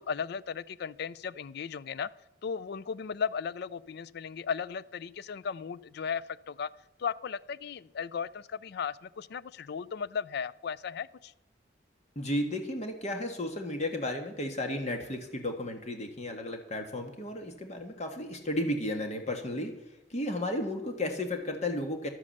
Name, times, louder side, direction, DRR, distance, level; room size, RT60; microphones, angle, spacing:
voice 1, 0.0-2.1 2.4-6.7 7.0-11.3, left 6 dB, 60° left, 19 dB, 0.4 m, -36 dB
voice 2, 12.1-19.7 20.1-22.1, left 1 dB, 40° left, 5 dB, 1.6 m, -33 dB
12.0 x 8.5 x 6.6 m, 0.92 s
head